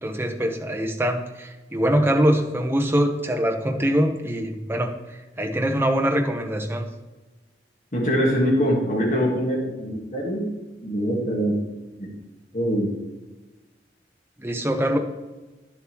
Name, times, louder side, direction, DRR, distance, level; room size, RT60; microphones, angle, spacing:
voice 1, 0.0-4.9 5.4-6.8 14.4-15.0, equal, 15° right, 3 dB, 0.9 m, -23 dB
voice 2, 7.9-10.5 10.8-11.6 12.0-12.1 12.5-12.9, equal, 45° left, -4 dB, 1.7 m, -23 dB
10.5 x 7.2 x 3.1 m, 1.1 s
head